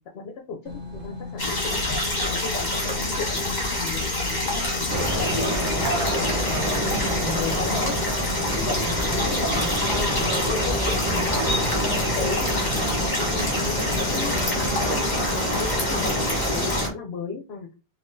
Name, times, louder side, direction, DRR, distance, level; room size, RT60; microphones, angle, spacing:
voice 1, 0.0-8.0 8.5-17.7, left 5 dB, 80° left, 2 dB, 0.8 m, -36 dB
sound 1, 0.6-15.0, left 3 dB, 60° right, 1.0 m, -37 dB
sound 2, 1.4-16.9, left 2 dB, 45° left, 1.3 m, -27 dB
sound 3, 4.9-16.9, right 1 dB, 20° right, 0.8 m, -27 dB
3.6 x 2.8 x 2.6 m, 0.32 s
omnidirectional pair, 1.0 m